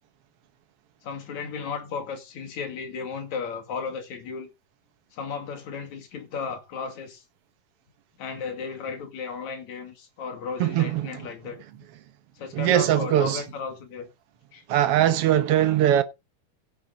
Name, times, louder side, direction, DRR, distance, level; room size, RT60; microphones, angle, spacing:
voice 1, 1.0-4.5 5.1-7.2 8.2-11.6 12.3-14.1 14.5-14.6, left 5 dB, 55° left, 3.4 m, -34 dB
voice 2, 10.6-11.3 12.5-13.4 14.7-16.0, right 11 dB, 65° right, 1.5 m, -21 dB
16.0 x 7.9 x 4.0 m
omnidirectional pair, 4.0 m